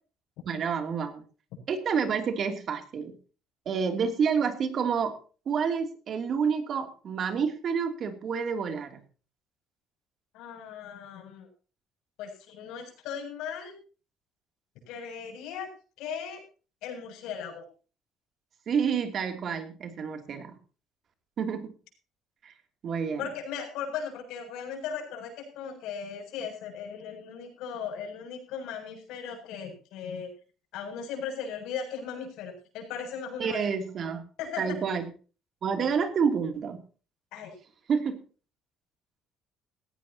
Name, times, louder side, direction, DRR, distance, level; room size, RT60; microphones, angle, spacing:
voice 1, 0.4-1.2 1.7-3.2 3.6-5.2 5.5-9.0 18.7-20.6 21.4-21.7 22.4-22.5 22.8-23.3 33.4-34.2 34.6-35.0 35.6-36.8 37.9-38.2, right 6 dB, 45° right, 6 dB, 3.0 m, -29 dB
voice 2, 10.3-11.5 12.2-13.8 14.9-15.7 16.0-16.4 16.8-17.6 23.2-30.3 30.7-33.7 34.4-34.8 37.3-37.6, left 7 dB, 85° left, 2 dB, 7.6 m, -37 dB
18.0 x 16.0 x 2.9 m, 0.37 s
cardioid pair, 130°, 0 cm